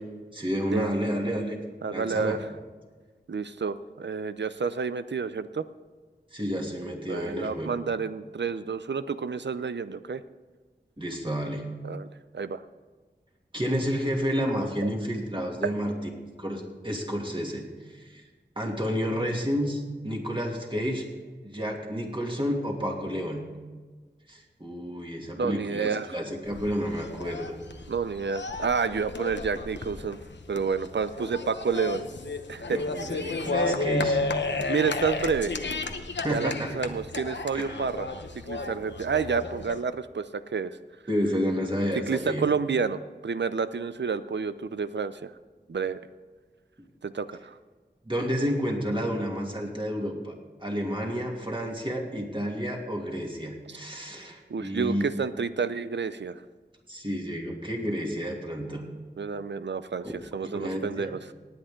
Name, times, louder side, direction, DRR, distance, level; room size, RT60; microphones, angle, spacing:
voice 1, 0.3-1.6 1.9-2.4 6.3-7.7 11.0-11.6 13.5-15.9 16.4-17.6 17.9-18.2 18.6-21.1 21.4-23.5 24.3-27.5 32.7-34.2 36.2-36.7 37.5-37.8 41.1-42.4 48.1-50.3 50.6-55.0 56.9-58.8 60.5-61.2, equal, 30° right, -1 dB, 2.7 m, -30 dB
voice 2, 1.8-2.4 3.3-5.6 7.1-10.2 11.8-12.1 12.3-12.6 25.4-26.2 27.9-30.2 30.5-32.0 32.5-32.8 34.7-35.5 36.3-38.1 38.5-40.8 42.1-45.3 45.7-46.0 47.0-47.6 54.5-56.4 59.2-61.3, right 5 dB, 85° right, 13 dB, 0.6 m, -29 dB
sound 1, 26.4-39.8, left 3 dB, 90° left, 0.9 m, -33 dB
18.5 x 8.8 x 3.8 m, 1.4 s
wide cardioid pair, 55°, 18 cm